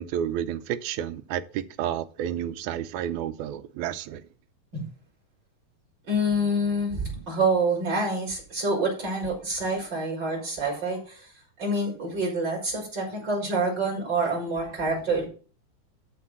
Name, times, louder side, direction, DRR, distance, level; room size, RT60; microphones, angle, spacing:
voice 1, 0.0-4.2, right 10 dB, 80° right, 1.8 m, -31 dB
voice 2, 6.1-11.3 11.6-15.3, right 2 dB, 30° right, 5.0 m, -27 dB
13.0 x 4.3 x 6.1 m
omnidirectional pair, 4.1 m